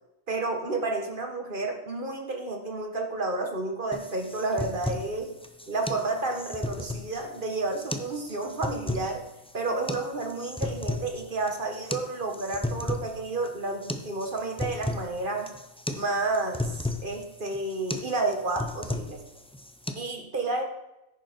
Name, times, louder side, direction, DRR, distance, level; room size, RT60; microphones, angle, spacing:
voice 1, 0.3-5.3 5.7-9.2 9.5-15.5 15.9-19.2 20.0-20.6, right 2 dB, 40° right, 4 dB, 1.7 m, -31 dB
sound 1, 3.9-19.9, left 1 dB, 5° left, 0.5 m, -35 dB
10.0 x 10.0 x 4.4 m, 0.92 s
omnidirectional pair, 1.4 m